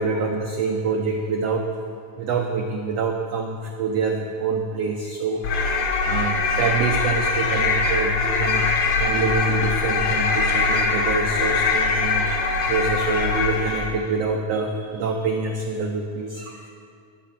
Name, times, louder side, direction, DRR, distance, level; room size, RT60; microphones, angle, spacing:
voice 1, 0.0-1.7 2.2-16.7, right 4 dB, 85° right, 2 dB, 1.4 m, -26 dB
sound 1, 5.4-14.0, left 4 dB, 65° left, 1.6 m, -22 dB
12.5 x 6.0 x 8.7 m, 2.3 s
omnidirectional pair, 3.8 m